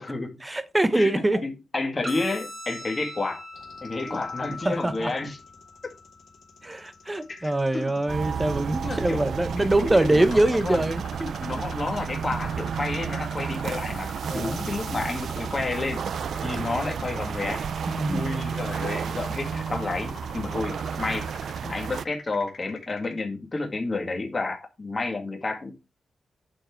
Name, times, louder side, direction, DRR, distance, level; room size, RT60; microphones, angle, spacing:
voice 1, 0.4-1.4 4.0-4.2 4.6-5.1 6.6-11.3 14.2-14.6 17.9-18.2, right 1 dB, 10° right, 0.8 m, -24 dB
voice 2, 0.9-3.4 3.8-5.4 7.3-7.8 8.8-9.2 10.1-10.8 11.4-16.0 16.4-17.6 18.1-21.3 21.6-25.7, left 3 dB, 25° left, 2.1 m, -30 dB
sound 1, 2.0-10.0, left 2 dB, 30° right, 1.7 m, -43 dB
sound 2, 3.5-23.2, left 6 dB, 65° left, 2.6 m, -45 dB
sound 3, 8.1-22.0, right 7 dB, 65° right, 0.4 m, -32 dB
10.5 x 4.6 x 4.5 m
wide cardioid pair, 165°, 0 cm